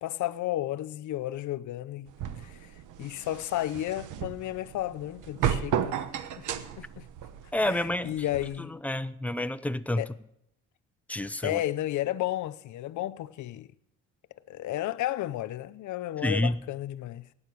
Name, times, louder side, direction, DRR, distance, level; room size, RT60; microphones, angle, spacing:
voice 1, 0.0-2.7 3.0-6.0 6.3-6.5 6.8-7.0 7.6-8.8 10.0-10.1 11.4-13.7 14.5-17.3, left 14 dB, 75° left, 0.7 m, -33 dB
sound 1, 2.1-8.6, right 9 dB, 90° right, 1.0 m, -34 dB
voice 2, 7.5-8.2 8.8-10.0 11.1-11.6 16.2-16.6, left 1 dB, 5° left, 0.7 m, -28 dB
16.5 x 9.7 x 6.2 m
cardioid pair, 90°, 30 cm